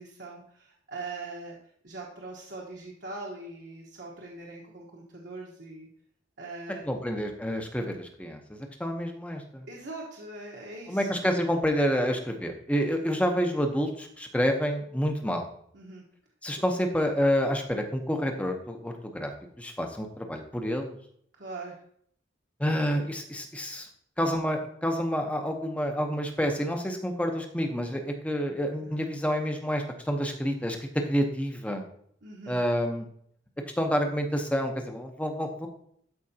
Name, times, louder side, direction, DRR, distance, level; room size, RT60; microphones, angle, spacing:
voice 1, 0.0-1.6 1.8-5.9 6.4-7.0 9.7-11.1 15.7-16.0 21.4-21.8 28.8-29.1 32.2-32.6, right 3 dB, 65° right, -2 dB, 1.2 m, -41 dB
voice 2, 6.8-9.7 10.9-15.5 16.4-19.3 19.6-21.0 22.6-23.9 24.2-31.9 32.5-33.1 33.7-35.7, equal, 5° left, 4 dB, 0.8 m, -28 dB
12.5 x 4.9 x 2.8 m, 0.67 s
head